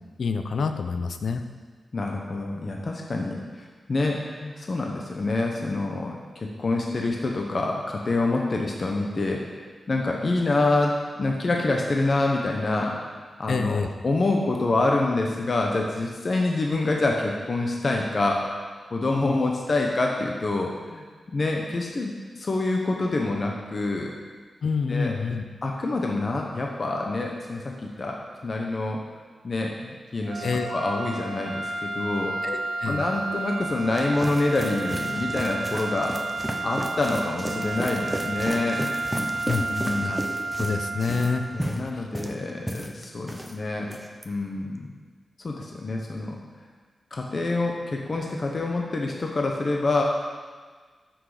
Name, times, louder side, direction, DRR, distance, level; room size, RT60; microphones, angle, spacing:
voice 1, 0.2-1.4 13.5-13.9 19.1-19.4 24.6-25.4 30.4-30.7 32.4-33.0 39.5-39.6 40.0-40.2 40.6-41.4 41.9-42.1, left 5 dB, 65° left, 7 dB, 0.7 m, -27 dB
voice 2, 1.9-18.5 18.9-21.0 21.3-24.1 24.9-25.2 25.6-29.0 29.4-32.4 32.9-36.2 36.6-38.9 39.6-40.2 41.5-44.0 44.2-44.9 45.4-46.4 47.1-50.0, left 2 dB, 35° left, 0 dB, 0.9 m, -27 dB
sound 1, 30.2-41.8, right 3 dB, 65° right, 0.7 m, -32 dB
sound 2, 33.6-43.5 43.8-44.3, equal, ahead, 0.7 m, -33 dB
13.5 x 6.3 x 5.0 m, 1.5 s
wide cardioid pair, 180°, 0 cm